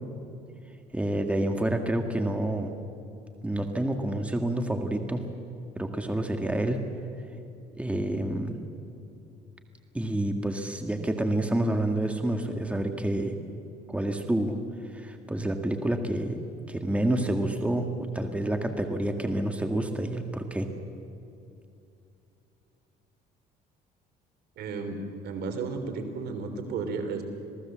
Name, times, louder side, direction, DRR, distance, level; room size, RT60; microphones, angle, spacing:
voice 1, 0.9-2.7 3.4-5.2 5.8-6.8 7.8-8.6 9.9-13.4 13.9-14.6 14.9-16.3 16.7-20.7, right 1 dB, 5° right, 5 dB, 1.8 m, -28 dB
voice 2, 24.6-25.0 25.2-27.2, right 4 dB, 75° right, 6 dB, 3.4 m, -33 dB
27.0 x 18.5 x 7.6 m, 2.7 s
cardioid pair, 110°, 17 cm